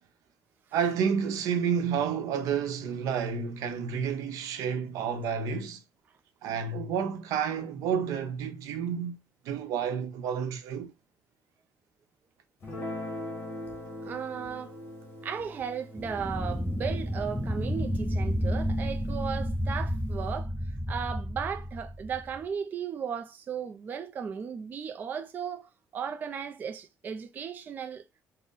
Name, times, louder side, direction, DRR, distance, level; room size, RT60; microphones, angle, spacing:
voice 1, 0.7-5.8 6.4-9.2 9.4-10.9, right 7 dB, 80° right, 0.7 m, -30 dB
Guitar, 12.6-19.2, left 1 dB, 40° left, 1.3 m, -42 dB
voice 2, 14.0-14.7 15.2-28.0, right 7 dB, 30° right, 0.4 m, -36 dB
sound 1, 16.0-22.4, equal, 5° left, 0.7 m, -31 dB
4.0 x 2.1 x 3.5 m
cardioid pair, 160°, 6 cm